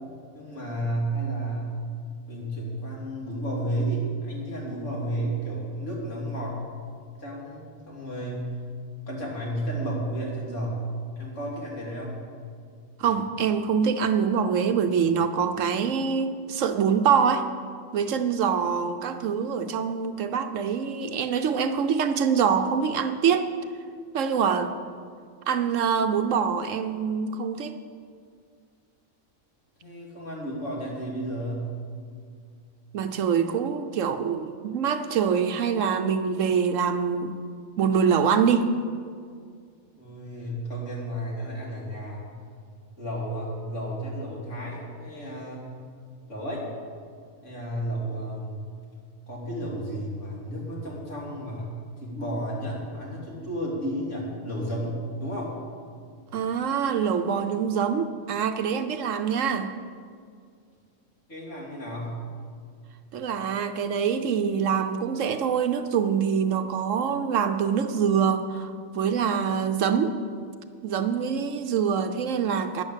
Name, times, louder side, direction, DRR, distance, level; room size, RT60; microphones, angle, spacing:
voice 1, 0.3-1.7 2.3-6.6 7.2-8.5 9.1-10.8 11.1-12.2 29.8-31.7 39.9-42.2 43.0-45.7 46.3-46.7 47.4-48.7 49.3-55.5 61.3-62.2, right 1 dB, 60° left, -4 dB, 3.3 m, -32 dB
voice 2, 13.0-17.5 17.9-23.5 24.1-24.7 25.5-27.8 32.9-37.4 37.8-38.7 56.3-59.7 63.1-70.2 70.8-72.8, right 7 dB, 70° right, 8 dB, 1.0 m, -25 dB
11.5 x 9.8 x 7.3 m, 2.2 s
omnidirectional pair, 1.5 m